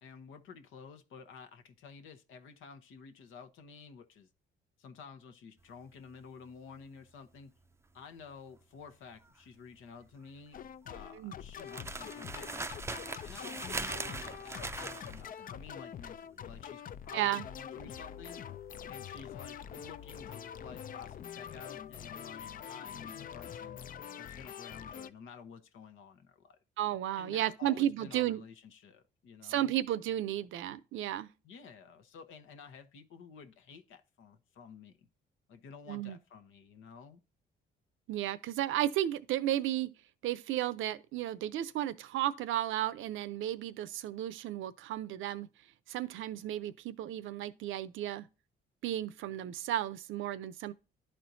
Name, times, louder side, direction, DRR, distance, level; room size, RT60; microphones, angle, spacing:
voice 1, 0.0-4.3 4.8-7.5 7.9-10.6 10.9-12.7 13.2-18.4 18.9-23.8 24.2-26.6 27.2-29.8 31.4-35.1 35.5-37.2, left 6 dB, 80° left, 1.0 m, -51 dB
sound 1, 5.6-21.8 22.1-22.4, right 3 dB, 15° right, 0.5 m, -43 dB
sound 2, 10.5-25.1, left 9 dB, 45° left, 0.4 m, -45 dB
voice 2, 17.1-17.4 26.8-28.4 29.4-31.3 35.9-36.2 38.1-39.9 40.2-45.5 45.9-48.3 48.8-50.7, right 12 dB, 80° right, 0.6 m, -33 dB
11.5 x 4.4 x 2.6 m
cardioid pair, 90°, 20 cm